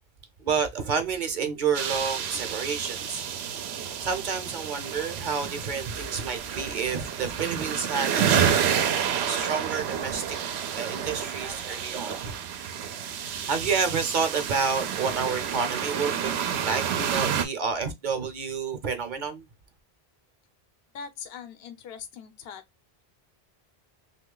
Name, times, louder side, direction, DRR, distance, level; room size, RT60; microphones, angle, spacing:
voice 1, 0.4-3.2 4.0-8.6 9.3-10.4 10.7-12.4 13.2-16.3 16.6-19.5, right 5 dB, 55° right, 0.8 m, -29 dB
sound 1, 1.7-17.4, right 8 dB, 90° right, 0.8 m, -29 dB
voice 2, 20.9-22.6, left 6 dB, 75° left, 0.9 m, -41 dB
3.1 x 2.4 x 3.6 m
omnidirectional pair, 1.0 m